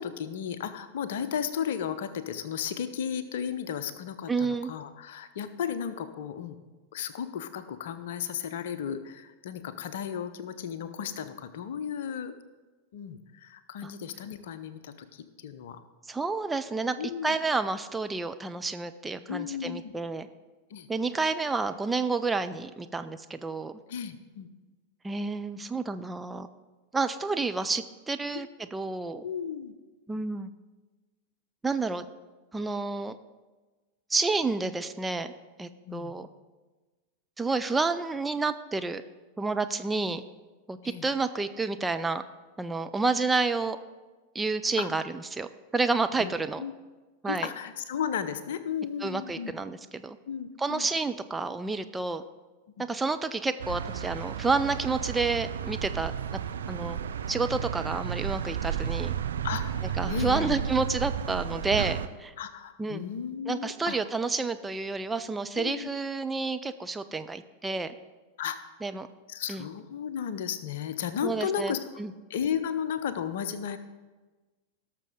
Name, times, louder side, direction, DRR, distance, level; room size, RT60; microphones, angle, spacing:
voice 1, 0.0-6.6 6.9-12.3 12.9-15.8 17.0-17.3 19.3-19.9 20.7-20.9 23.9-24.5 28.3-28.4 29.2-29.7 35.9-36.1 40.8-41.1 44.8-44.9 46.2-46.7 47.2-49.5 50.3-50.9 52.8-52.9 59.4-60.6 62.4-64.0 65.5-65.9 68.4-68.7 69.3-71.8 72.3-73.8, left 8 dB, 55° left, 12 dB, 0.7 m, -34 dB
voice 2, 4.3-4.7 13.8-13.9 16.1-17.0 17.2-20.3 20.9-23.8 25.0-26.5 26.9-29.2 30.1-30.5 31.6-32.1 32.5-33.2 34.1-35.3 35.6-36.3 37.4-39.0 39.4-40.2 40.7-42.2 42.6-43.8 44.3-45.5 45.7-46.6 47.2-47.5 49.0-50.2 50.6-52.2 52.8-56.1 56.7-57.0 57.3-59.1 60.0-62.3 62.8-63.0 63.5-67.9 68.8-69.1 69.5-69.7 71.2-71.7 72.0-72.1, right 3 dB, 10° right, 9 dB, 0.4 m, -30 dB
sound 1, 53.6-62.1, right 8 dB, 65° right, 0.5 m, -32 dB
17.5 x 6.6 x 3.8 m, 1.2 s
figure-of-eight pair, 90°, 0 cm